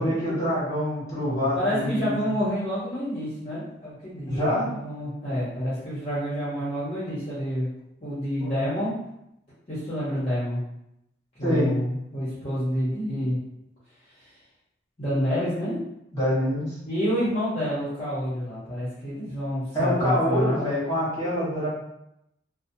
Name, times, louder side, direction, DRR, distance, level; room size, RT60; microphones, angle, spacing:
voice 1, 0.0-2.1 4.3-4.7 8.4-8.7 11.4-11.7 16.1-16.7 19.7-21.7, equal, 20° left, -9 dB, 1.3 m, -25 dB
voice 2, 1.5-7.7 8.0-8.9 9.7-10.6 11.4-13.4 15.0-15.8 16.9-20.7, equal, 35° left, -10 dB, 0.9 m, -28 dB
2.8 x 2.1 x 2.6 m, 0.80 s
head